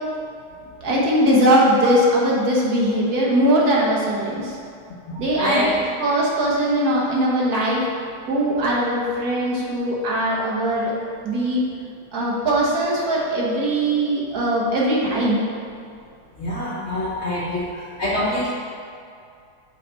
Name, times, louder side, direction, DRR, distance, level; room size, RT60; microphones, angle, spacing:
voice 1, 0.8-4.6 5.2-7.8 8.3-10.9 11.2-11.6 12.1-15.4, right 1 dB, 50° right, -4 dB, 1.5 m, -20 dB
voice 2, 5.1-5.7 16.4-18.5, left 1 dB, 70° left, -5 dB, 0.6 m, -25 dB
6.8 x 5.0 x 4.0 m, 2.3 s
omnidirectional pair, 2.4 m